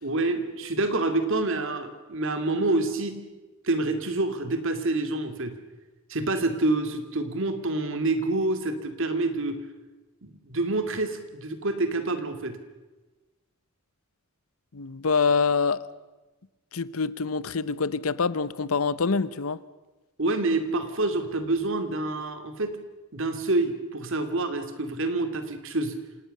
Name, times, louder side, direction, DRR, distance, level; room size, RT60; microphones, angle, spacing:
voice 1, 0.0-3.2 3.6-5.5 6.1-9.6 10.2-12.6 20.2-22.8 23.1-25.9, right 2 dB, 65° right, 8 dB, 2.5 m, -27 dB
voice 2, 14.7-15.8 16.7-19.6, left 5 dB, 75° left, 18 dB, 0.8 m, -25 dB
27.0 x 18.5 x 6.7 m, 1.1 s
head